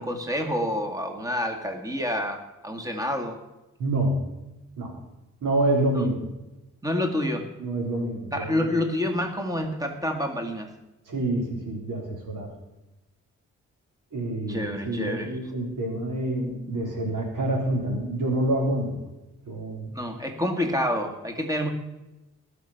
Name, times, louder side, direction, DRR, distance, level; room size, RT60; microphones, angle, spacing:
voice 1, 0.0-3.4 6.8-7.5 8.3-10.7 14.5-15.3 19.9-21.7, left 1 dB, 10° right, 5 dB, 2.1 m, -28 dB
voice 2, 3.8-4.3 4.8-5.0 5.4-6.2 7.6-8.7 11.1-12.5 14.1-19.0 19.5-20.0, right 1 dB, 75° right, 1 dB, 4.2 m, -27 dB
20.0 x 6.7 x 5.9 m, 0.99 s
cardioid pair, 55°, 31 cm